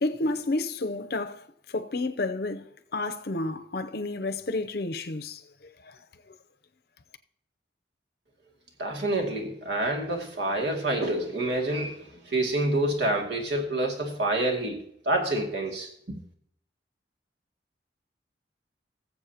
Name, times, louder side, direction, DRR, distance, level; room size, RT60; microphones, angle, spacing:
voice 1, 0.0-1.4 1.7-2.6 2.9-5.4 5.9-6.0, left 2 dB, 60° left, 0.7 m, -30 dB
voice 2, 8.8-14.8 15.1-16.2, right 1 dB, 75° right, 2.3 m, -27 dB
19.5 x 7.5 x 2.9 m
head